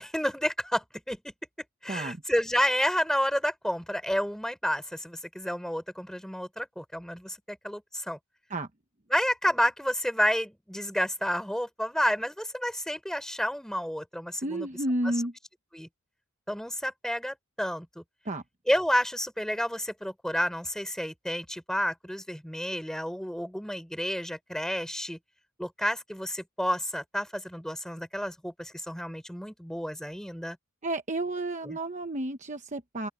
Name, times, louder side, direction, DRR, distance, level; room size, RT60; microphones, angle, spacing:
voice 1, 0.0-1.3 1.8-8.2 9.1-14.7 15.0-15.1 15.7-15.9 16.5-18.0 18.7-25.2 25.6-30.6 31.6-31.8, equal, ahead, 3.9 m, -30 dB
voice 2, 14.4-15.3 18.2-18.4 30.8-33.1, right 1 dB, 35° right, 1.0 m, -31 dB
open air
head